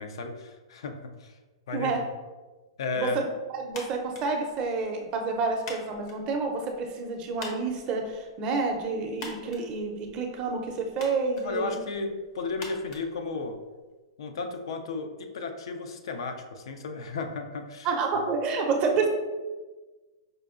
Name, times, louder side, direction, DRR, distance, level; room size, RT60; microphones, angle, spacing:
voice 1, 0.0-1.3 1.7-1.9 2.8-3.2 11.4-13.6 14.2-17.9, left 4 dB, 75° left, 5 dB, 0.4 m, -34 dB
voice 2, 3.5-11.8 17.8-19.1, right 4 dB, 35° right, 2 dB, 0.5 m, -29 dB
sound 1, 3.7-13.9, left 3 dB, 55° left, 0.8 m, -47 dB
5.0 x 2.2 x 2.4 m, 1.2 s
hypercardioid pair, 130°, 3 cm